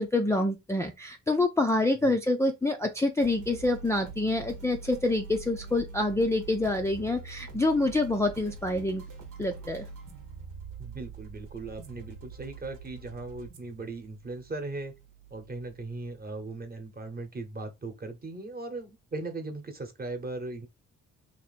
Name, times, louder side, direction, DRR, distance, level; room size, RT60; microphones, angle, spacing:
voice 1, 0.0-9.0 9.4-9.9, left 2 dB, 10° left, 0.4 m, -27 dB
sound 1, 3.2-16.6, right 4 dB, 85° right, 1.1 m, -45 dB
voice 2, 10.8-14.9 15.3-20.7, right 2 dB, 30° right, 1.0 m, -38 dB
2.8 x 2.6 x 4.1 m
cardioid pair, 90°, 30 cm